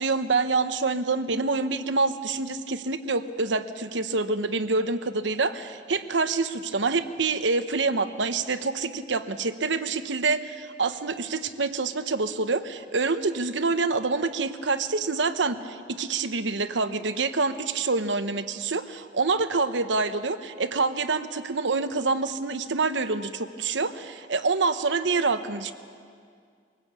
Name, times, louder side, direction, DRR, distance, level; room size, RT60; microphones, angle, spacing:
voice 1, 0.0-25.7, right 3 dB, 85° right, 10 dB, 1.1 m, -26 dB
23.5 x 18.5 x 8.3 m, 2.2 s
head